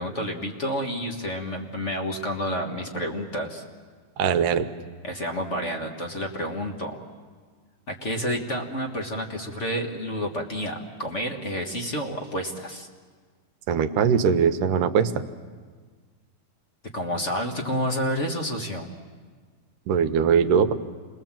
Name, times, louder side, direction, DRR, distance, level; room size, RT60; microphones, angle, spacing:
voice 1, 0.0-3.6 5.0-7.0 7.9-12.9 16.9-18.9, equal, 35° left, 2 dB, 1.1 m, -29 dB
voice 2, 4.2-4.6 13.7-15.1 19.9-20.7, right 7 dB, 80° right, 9 dB, 2.5 m, -21 dB
28.5 x 21.5 x 7.4 m, 1.5 s
omnidirectional pair, 3.7 m